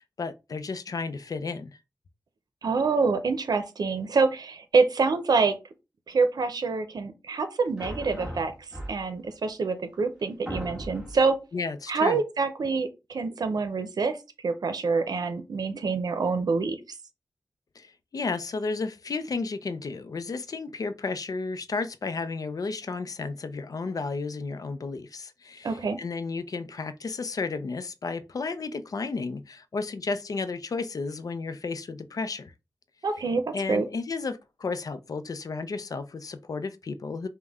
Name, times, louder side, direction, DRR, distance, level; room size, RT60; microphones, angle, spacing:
voice 1, 0.0-1.8 11.5-12.2 17.8-32.5 33.5-37.3, left 4 dB, 65° left, 0.5 m, -33 dB
voice 2, 2.6-5.5 6.1-8.5 8.9-11.4 11.9-14.2 14.4-16.8 25.6-26.0 33.0-33.8, right 4 dB, 80° right, 0.6 m, -26 dB
sound 1, 7.8-9.3 9.9-10.0 10.5-11.3, equal, 15° right, 1.5 m, -37 dB
5.3 x 2.2 x 3.5 m
wide cardioid pair, 90°, 7 cm